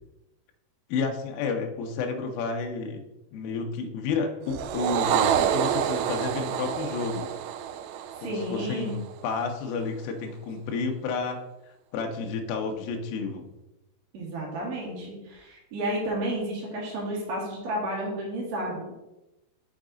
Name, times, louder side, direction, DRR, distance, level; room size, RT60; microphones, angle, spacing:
voice 1, 0.9-3.0 3.3-7.3 8.2-11.4 11.9-13.5, left 4 dB, 85° left, 3 dB, 2.1 m, -31 dB
sound 1, 4.5-9.1, right 9 dB, 85° right, 2.4 m, -28 dB
voice 2, 8.2-9.0 14.1-18.9, right 1 dB, 50° right, -4 dB, 2.2 m, -32 dB
6.4 x 5.9 x 3.8 m, 0.98 s
omnidirectional pair, 5.3 m